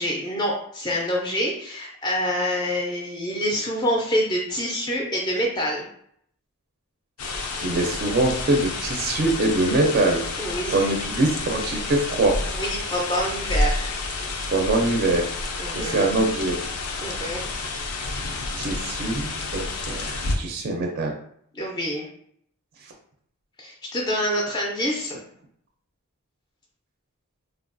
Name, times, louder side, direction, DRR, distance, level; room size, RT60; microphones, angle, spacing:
voice 1, 0.0-5.9 10.4-11.0 12.6-13.9 15.6-16.1 17.0-17.4 21.5-22.1 23.6-25.1, equal, 20° left, -2 dB, 0.4 m, -26 dB
sound 1, 7.2-20.4, left 3 dB, 75° left, 0.5 m, -29 dB
voice 2, 7.6-10.2 10.7-12.4 14.5-15.3 15.7-16.6 18.6-21.1, right 2 dB, 45° right, 2 dB, 0.4 m, -23 dB
3.3 x 2.3 x 2.4 m, 0.66 s
head